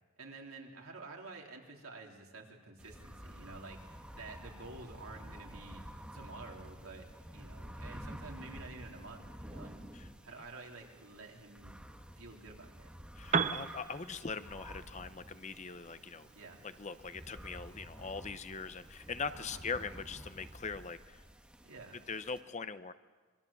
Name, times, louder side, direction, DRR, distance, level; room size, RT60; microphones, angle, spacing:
voice 1, 0.2-5.8 6.1-7.1 7.3-9.8 10.2-11.8 12.2-12.9 16.3-16.6 19.4-19.6 21.6-22.0, right 3 dB, 85° right, 0 dB, 3.7 m, -50 dB
sound 1, 2.8-22.4, equal, 5° right, 1.5 m, -51 dB
voice 2, 13.2-16.3 16.6-21.2 22.1-22.9, left 5 dB, 35° left, 11 dB, 0.8 m, -41 dB
Piano, 13.2-21.0, right 5 dB, 35° right, 0.6 m, -41 dB
26.0 x 21.5 x 7.3 m, 1.4 s
head